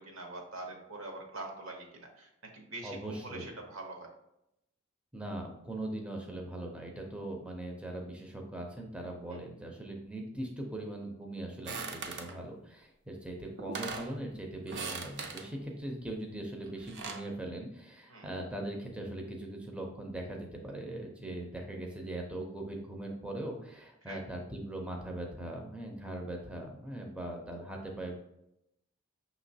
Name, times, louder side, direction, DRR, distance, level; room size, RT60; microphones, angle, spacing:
voice 1, 0.0-4.1 9.3-9.4 18.1-18.3 24.0-24.2, right 2 dB, 70° right, 2 dB, 1.0 m, -44 dB
voice 2, 2.8-3.6 5.1-28.2, right 1 dB, 5° right, 1 dB, 0.5 m, -40 dB
sound 1, 11.7-12.4 13.3-13.4 13.6-14.1 14.7-15.5 16.6-17.3, right 4 dB, 55° right, 0.6 m, -39 dB
5.9 x 3.0 x 2.7 m, 0.82 s
head